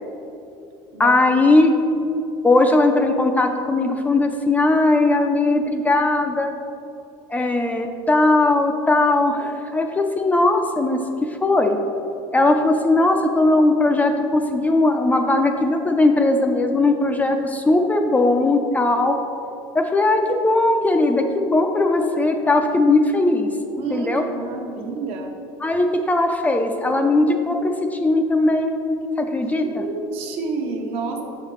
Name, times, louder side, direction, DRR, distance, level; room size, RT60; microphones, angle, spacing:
voice 1, 1.0-1.7 2.4-6.5 7.3-11.8 12.3-19.2 19.7-23.5 23.9-24.3 25.6-28.7 29.2-29.8, left 2 dB, 15° left, 4 dB, 0.4 m, -19 dB
voice 2, 23.8-25.3 29.4-31.2, right 4 dB, 60° right, 2 dB, 0.9 m, -29 dB
7.0 x 5.7 x 3.1 m, 2.7 s
supercardioid pair, 120°, 11 cm